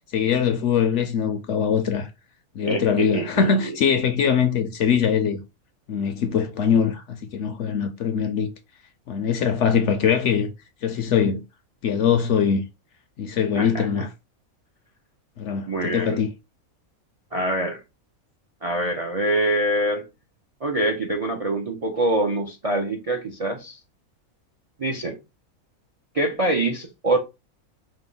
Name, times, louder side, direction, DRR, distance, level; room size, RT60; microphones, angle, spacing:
voice 1, 0.1-2.1 2.6-5.4 5.9-8.5 9.1-10.5 10.8-11.4 11.8-12.6 13.2-14.1 15.4-16.3, left 7 dB, 65° left, 0.8 m, -22 dB
voice 2, 2.6-3.7 13.6-14.0 15.7-16.2 17.3-17.8 18.6-20.1 20.6-23.8 24.8-25.2 26.1-27.2, right 1 dB, 50° right, 0.4 m, -25 dB
5.2 x 2.1 x 3.8 m
omnidirectional pair, 1.5 m